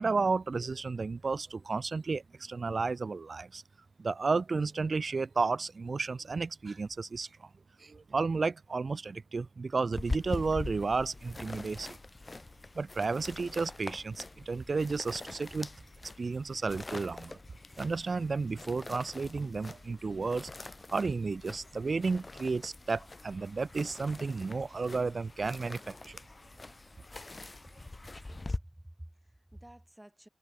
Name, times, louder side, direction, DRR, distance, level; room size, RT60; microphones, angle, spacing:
voice 1, 0.0-3.6 4.0-7.5 7.8-12.0 12.7-15.7 16.2-17.4 17.8-26.2, right 4 dB, 50° right, 0.6 m, -32 dB
sound 1, 9.9-28.6, left 2 dB, 30° left, 1.3 m, -43 dB
voice 2, 28.3-30.3, right 1 dB, 10° right, 6.4 m, -50 dB
cardioid pair, 60°, 0 cm